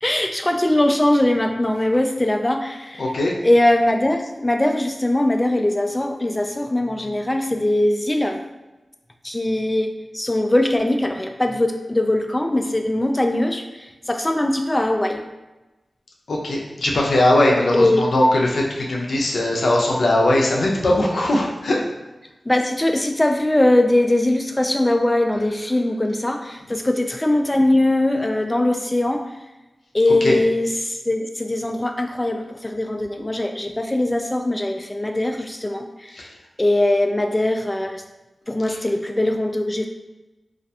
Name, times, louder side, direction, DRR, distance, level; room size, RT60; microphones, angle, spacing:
voice 1, 0.0-3.1 3.4-8.4 9.2-15.2 17.7-18.0 22.5-29.3 29.9-36.3 36.6-38.0 38.5-39.8, left 1 dB, 20° left, 4 dB, 0.3 m, -21 dB
voice 2, 3.0-3.3 16.3-21.8 30.2-30.4 36.2-36.3 38.7-38.8, left 1 dB, 85° left, -1 dB, 0.5 m, -19 dB
2.4 x 2.2 x 2.7 m, 1.1 s
wide cardioid pair, 60°, 0 cm